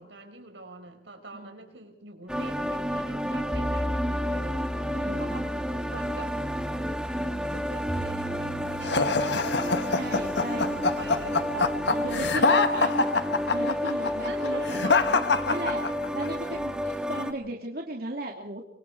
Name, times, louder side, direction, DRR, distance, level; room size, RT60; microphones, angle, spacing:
voice 1, 0.0-5.5 5.9-6.4 7.5-10.0 10.4-11.5 12.1-13.4 14.2-14.9 16.8-17.0, right 2 dB, 80° right, 7 dB, 4.7 m, -45 dB
sound 1, 2.3-17.3, equal, 5° right, 1.7 m, -31 dB
sound 2, 3.5-12.3, equal, 15° left, 5.2 m, -38 dB
voice 2, 4.9-5.5 9.9-10.6 11.5-12.9 13.5-15.2 15.4-18.6, right 2 dB, 55° right, 1 dB, 2.7 m, -36 dB
sound 3, 8.8-16.3, left 4 dB, 70° left, 1.4 m, -25 dB
25.0 x 24.5 x 4.7 m, 0.71 s
head